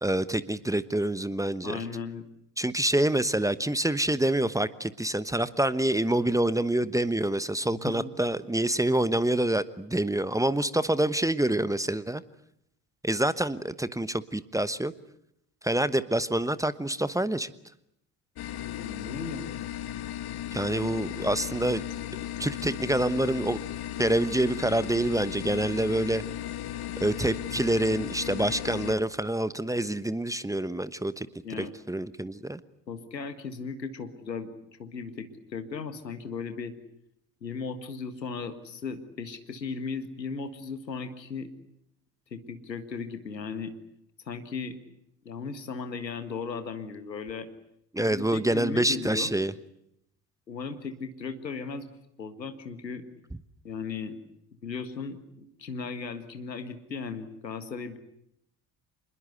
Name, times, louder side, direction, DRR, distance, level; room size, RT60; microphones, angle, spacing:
voice 1, 0.0-1.8 2.6-12.2 13.0-14.9 15.6-17.5 20.5-21.8 22.4-23.6 24.0-26.2 27.0-31.3 31.6-32.6 47.9-49.5, right 1 dB, 5° right, 15 dB, 1.1 m, -27 dB
voice 2, 1.6-2.2 7.7-8.1 18.8-19.4 20.7-21.0 31.4-31.7 32.9-34.5 34.8-36.7 37.4-41.5 42.3-43.7 44.2-44.8 45.2-47.5 48.0-49.3 50.5-51.9 52.2-53.0 53.6-54.2 54.6-58.0, left 5 dB, 85° left, 10 dB, 1.8 m, -36 dB
sound 1, 18.4-28.9, left 12 dB, 50° left, 1.5 m, -36 dB
26.5 x 21.0 x 8.1 m, 0.77 s
figure-of-eight pair, 55°, 49 cm